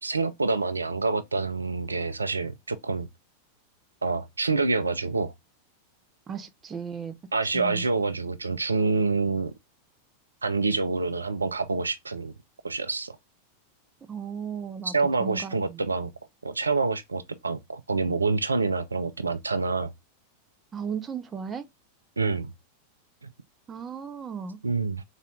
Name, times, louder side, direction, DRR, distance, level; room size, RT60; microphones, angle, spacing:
voice 1, 0.0-3.1 4.0-5.3 7.3-9.5 10.4-12.3 12.6-13.2 14.8-16.1 16.4-19.9 22.2-22.5 24.6-25.0, right 3 dB, 80° right, 0.3 m, -27 dB
voice 2, 6.3-7.1 7.5-7.8 14.1-14.9 15.2-15.8 20.7-21.6 23.7-24.6, right 6 dB, 20° right, 0.6 m, -35 dB
3.9 x 2.6 x 3.2 m
figure-of-eight pair, 90°, 0 cm